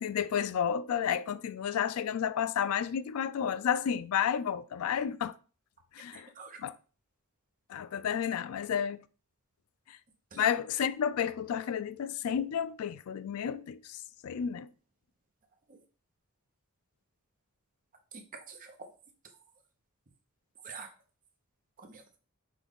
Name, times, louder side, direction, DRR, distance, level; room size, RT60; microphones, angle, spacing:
voice 1, 0.0-5.3 5.9-6.3 6.6-6.7 7.7-9.0 9.9-10.0 10.4-14.7, left 8 dB, 70° left, 0.3 m, -31 dB
voice 2, 6.1-6.6 10.3-10.5 15.7-15.8 18.1-18.9 20.6-20.9 21.8-22.2, right 4 dB, 40° right, 0.7 m, -47 dB
6.0 x 2.3 x 3.5 m
head